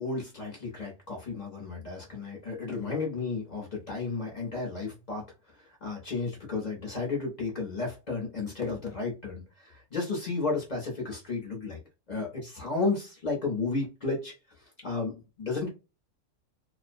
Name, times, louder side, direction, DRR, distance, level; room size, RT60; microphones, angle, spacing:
voice 1, 0.0-5.2 5.6-11.8 12.1-14.3 14.8-15.7, left 3 dB, 40° left, 0 dB, 0.7 m, -33 dB
2.4 x 2.1 x 2.5 m, 0.29 s
omnidirectional pair, 1.4 m